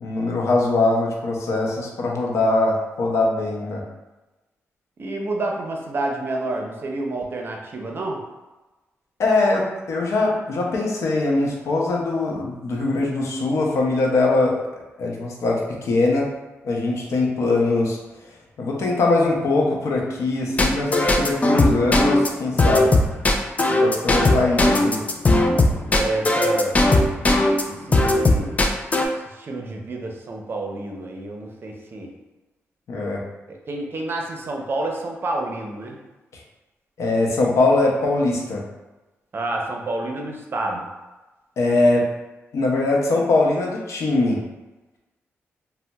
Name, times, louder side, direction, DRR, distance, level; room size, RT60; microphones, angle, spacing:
voice 1, 0.0-3.8 9.2-16.3 16.6-18.0 18.6-22.9 23.8-25.0 32.9-33.2 36.3-36.4 37.0-38.6 41.6-42.0 42.5-44.4, left 2 dB, 75° left, -1 dB, 0.6 m, -21 dB
voice 2, 5.0-8.2 25.9-26.8 27.9-28.6 29.3-32.1 33.5-36.0 39.3-40.8, right 2 dB, 50° right, 1 dB, 0.5 m, -28 dB
sound 1, 20.6-27.6 27.9-29.1, left 2 dB, 30° left, 0.3 m, -17 dB
3.8 x 2.0 x 2.2 m, 1.1 s
cardioid pair, 80°, 5 cm